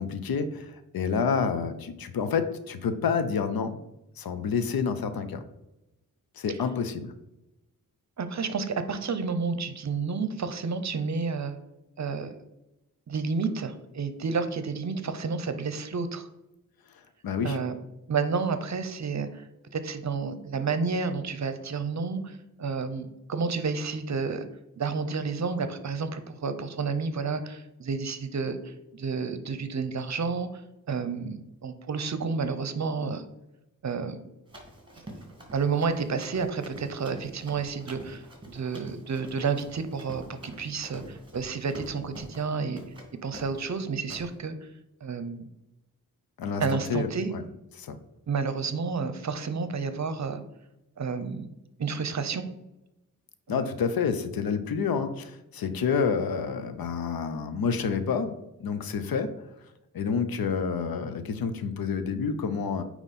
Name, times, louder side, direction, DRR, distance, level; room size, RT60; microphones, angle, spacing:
voice 1, 0.0-3.8 4.2-5.4 6.4-7.1 17.2-17.6 46.4-47.4 47.8-48.0 53.5-58.4 58.6-59.4 59.9-62.8, left 6 dB, 85° left, 10 dB, 0.7 m, -28 dB
voice 2, 8.2-11.6 12.0-12.3 13.1-16.3 17.4-17.8 18.1-19.4 19.7-24.5 24.8-30.6 30.9-31.4 31.6-33.2 33.8-34.2 35.5-42.8 43.2-44.5 45.0-45.4 46.6-47.3 48.3-50.4 51.0-51.4 51.8-52.5 53.5-53.7, right 5 dB, 50° right, 10 dB, 0.7 m, -30 dB
Run, 34.5-42.5 42.8-43.1 43.3-43.7 44.1-44.3, right 1 dB, 15° right, 1.9 m, -46 dB
8.9 x 3.0 x 4.2 m, 0.93 s
wide cardioid pair, 95°, 35 cm